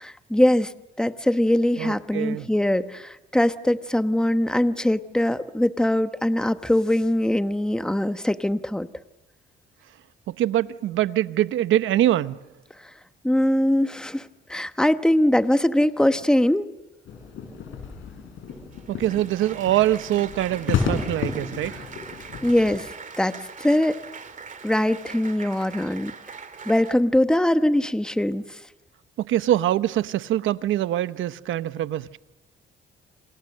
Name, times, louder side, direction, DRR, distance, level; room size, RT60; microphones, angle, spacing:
voice 1, 0.0-0.7 1.0-8.9 13.2-16.7 22.4-22.9 23.2-24.0 24.6-26.1 26.7-28.4, left 1 dB, 5° left, 1.1 m, -22 dB
voice 2, 1.8-2.5 10.3-12.4 18.9-21.8 29.2-32.2, right 13 dB, 80° right, 0.9 m, -24 dB
sound 1, 17.1-22.8, left 6 dB, 80° left, 7.0 m, -32 dB
Applause, 18.5-26.9, right 5 dB, 40° right, 2.5 m, -41 dB
28.5 x 27.0 x 6.7 m
cardioid pair, 90°, 20 cm